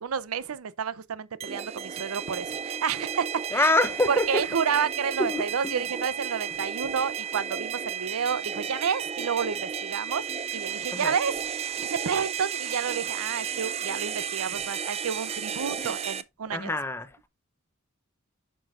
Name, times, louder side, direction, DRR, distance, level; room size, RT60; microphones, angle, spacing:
voice 1, 0.0-3.2 3.5-3.6 4.1-10.2 10.5-16.8, right 7 dB, 90° right, 0.5 m, -30 dB
sound 1, 1.4-16.2, right 8 dB, 30° right, 0.4 m, -33 dB
voice 2, 3.5-4.4 5.2-5.7 10.9-11.1 15.8-15.9 16.5-17.1, left 2 dB, 10° left, 0.6 m, -26 dB
8.9 x 6.2 x 2.5 m
head